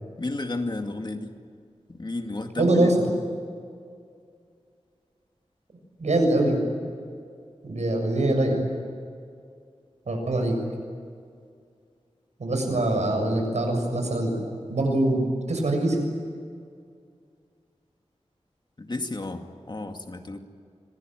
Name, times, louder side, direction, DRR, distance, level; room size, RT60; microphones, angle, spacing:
voice 1, 0.2-1.3 1.9-3.2 12.7-12.8 18.8-20.4, left 2 dB, 40° left, 5 dB, 2.3 m, -32 dB
voice 2, 2.6-2.9 6.0-6.6 7.6-8.7 10.1-10.6 12.4-14.4 14.7-15.2 15.5-16.0, right 1 dB, 85° right, 3 dB, 7.0 m, -23 dB
26.0 x 20.0 x 9.3 m, 2.2 s
wide cardioid pair, 90°, 12 cm